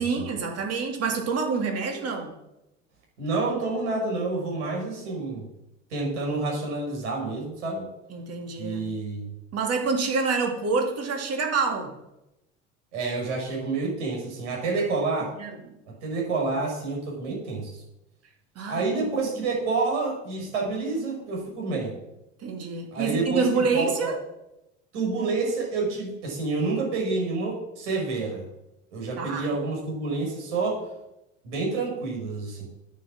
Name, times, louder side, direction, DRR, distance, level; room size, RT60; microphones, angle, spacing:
voice 1, 0.0-2.4 8.1-8.9 9.5-11.9 15.4-15.5 18.5-19.3 22.4-24.2 29.2-29.5, right 4 dB, 40° right, 3 dB, 3.1 m, -27 dB
voice 2, 3.2-5.4 5.9-7.9 8.6-9.3 12.9-15.3 16.0-17.8 18.7-21.9 22.9-24.2 24.9-28.4 28.9-30.8 31.4-32.7, right 3 dB, 70° right, -1 dB, 6.0 m, -28 dB
9.9 x 9.1 x 7.4 m, 0.89 s
figure-of-eight pair, 70°, 36 cm